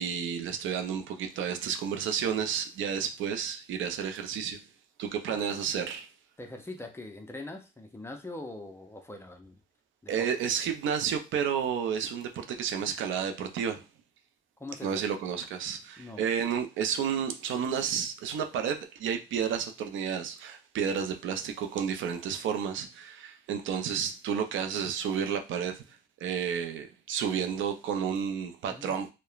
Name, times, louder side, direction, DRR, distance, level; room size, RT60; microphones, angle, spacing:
voice 1, 0.0-4.6 5.0-6.1 10.1-13.8 14.8-25.8 26.2-29.1, right 7 dB, 75° right, 0.5 m, -31 dB
voice 2, 6.4-9.6 10.0-10.3 14.6-15.0 16.0-16.2 28.7-29.0, left 2 dB, 10° left, 0.5 m, -42 dB
2.9 x 2.1 x 2.3 m
cardioid pair, 90°, 20 cm